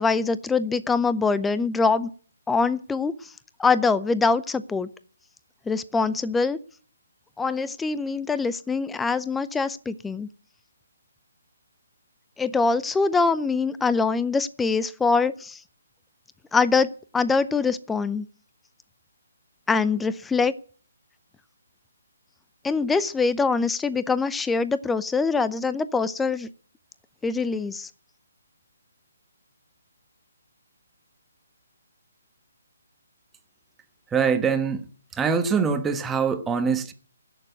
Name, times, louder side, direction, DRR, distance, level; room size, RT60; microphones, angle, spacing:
voice 1, 0.0-2.1 2.5-3.1 3.6-4.9 5.7-6.6 7.4-10.3 12.4-15.6 16.5-18.3 19.7-20.5 22.6-26.5 27.2-27.9, left 4 dB, 5° left, 0.6 m, -23 dB
voice 2, 34.1-34.8 35.1-36.9, right 6 dB, 10° right, 1.2 m, -23 dB
16.5 x 6.8 x 9.5 m
hypercardioid pair, 150°, 0 cm